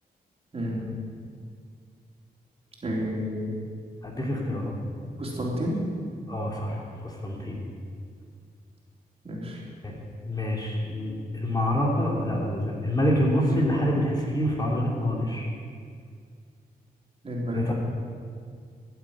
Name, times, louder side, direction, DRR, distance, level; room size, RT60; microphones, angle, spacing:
voice 1, 0.5-0.9 2.8-3.5 5.2-5.8 9.2-9.6 17.2-17.7, equal, 40° right, -3 dB, 3.6 m, -30 dB
voice 2, 4.0-4.7 6.3-7.6 9.8-10.0 10.2-15.5 17.5-17.7, equal, 25° left, -2 dB, 2.8 m, -26 dB
14.0 x 8.0 x 8.7 m, 2.1 s
cardioid pair, 90°, 16 cm